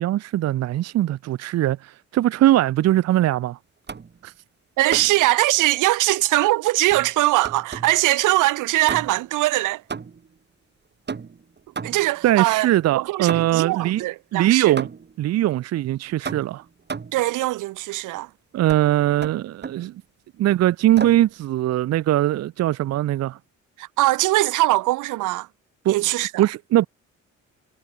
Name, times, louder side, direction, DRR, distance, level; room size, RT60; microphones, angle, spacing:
voice 1, 0.0-3.6 4.2-4.3 12.2-14.0 14.3-14.9 15.2-16.6 18.5-19.9 20.4-23.4 25.8-26.0 26.4-26.9, right 14 dB, 60° right, 0.5 m, -21 dB
sound 1, 3.9-4.2 4.9-5.3 6.9-8.0 8.9-9.4 9.9-10.4 11.1-12.2 13.3-13.7 14.8-15.2 16.2-17.3 18.7-18.9 19.2-19.9 21.0-21.3, right 5 dB, 35° right, 3.8 m, -34 dB
voice 2, 4.8-9.8 11.8-12.7 12.9-14.7 17.1-18.3 23.8-25.5 25.9-26.3, right 18 dB, 85° right, 0.8 m, -21 dB
cardioid pair, 90°, 30 cm